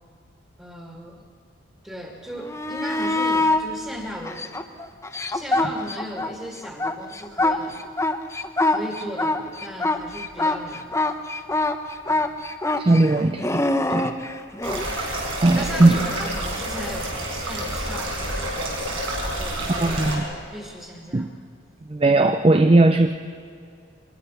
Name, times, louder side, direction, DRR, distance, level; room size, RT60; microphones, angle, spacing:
voice 1, 0.6-1.3 1.8-4.7 5.3-7.8 8.7-10.9 14.7-15.0 15.5-18.9 19.2-21.3, equal, 10° right, 1 dB, 2.0 m, -37 dB
sound 1, 2.4-3.6 4.2-6.3 6.6-14.8 17.6-17.7, left 2 dB, 15° left, 0.8 m, -24 dB
voice 2, 12.8-13.6 13.9-14.1 15.4-16.0 19.7-20.2 21.1-21.3 21.9-23.1, right 2 dB, 25° right, 8 dB, 0.5 m, -18 dB
sound 2, 14.6-20.2, right 1 dB, 85° right, 4.9 m, -29 dB
22.5 x 20.5 x 5.7 m, 2.4 s
head